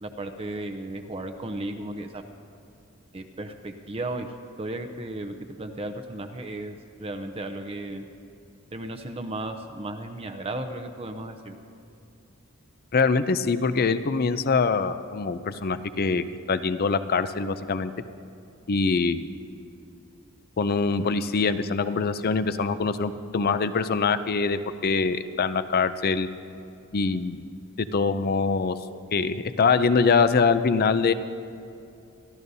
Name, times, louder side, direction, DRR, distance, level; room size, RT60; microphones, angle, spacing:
voice 1, 0.0-2.2 3.1-4.3 4.6-8.0 8.7-11.5, right 2 dB, 30° right, 5 dB, 0.6 m, -35 dB
voice 2, 12.9-17.9 18.7-19.3 20.6-26.3 26.9-27.4 27.8-28.8 29.1-31.1, left 4 dB, 45° left, 12 dB, 0.5 m, -24 dB
26.0 x 12.5 x 2.7 m, 2.6 s
head